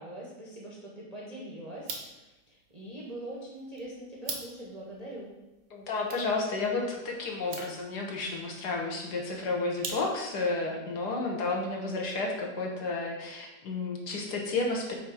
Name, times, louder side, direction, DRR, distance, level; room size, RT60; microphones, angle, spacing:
voice 1, 0.0-5.3, right 1 dB, 30° right, -5 dB, 0.7 m, -43 dB
sound 1, 1.7-10.5, right 4 dB, 85° right, 1.6 m, -45 dB
voice 2, 5.7-14.9, left 3 dB, 65° left, 0 dB, 1.4 m, -31 dB
7.2 x 2.8 x 4.8 m, 1.0 s
omnidirectional pair, 1.9 m